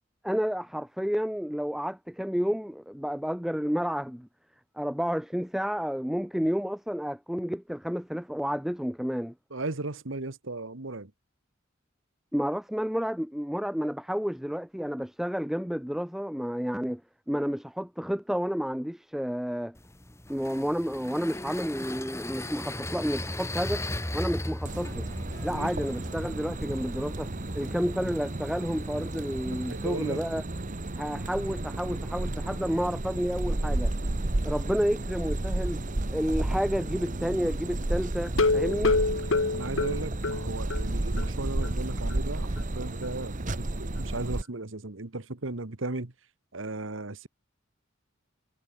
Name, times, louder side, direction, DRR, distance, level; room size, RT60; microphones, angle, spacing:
voice 1, 0.2-4.3 4.8-9.3 12.3-17.0 17.3-19.7 20.3-23.9 24.1-25.1 25.4-30.4 31.0-33.9 34.4-35.8 36.1-39.0, equal, ahead, 0.7 m, -30 dB
voice 2, 9.5-11.1 25.5-25.7 29.7-30.2 38.7-38.9 39.5-46.1 46.5-47.3, right 2 dB, 70° right, 1.6 m, -36 dB
sound 1, 19.8-30.2, left 1 dB, 15° left, 2.0 m, -38 dB
sound 2, 24.6-44.4, right 1 dB, 40° right, 1.1 m, -32 dB
sound 3, 38.3-40.9 41.2-41.3 41.6-41.7 42.1-42.2, left 3 dB, 70° left, 1.3 m, -26 dB
head